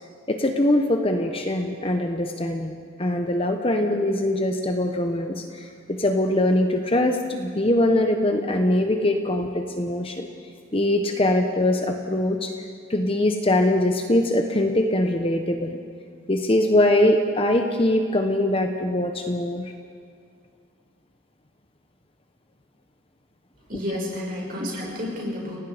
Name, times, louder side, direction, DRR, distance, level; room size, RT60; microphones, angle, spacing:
voice 1, 0.3-5.4 5.9-10.3 10.7-12.5 12.9-15.8 16.3-19.7, left 1 dB, 25° left, 5 dB, 1.1 m, -22 dB
voice 2, 23.7-25.6, left 1 dB, 40° right, -3 dB, 6.3 m, -30 dB
29.5 x 18.0 x 5.1 m, 2.2 s
head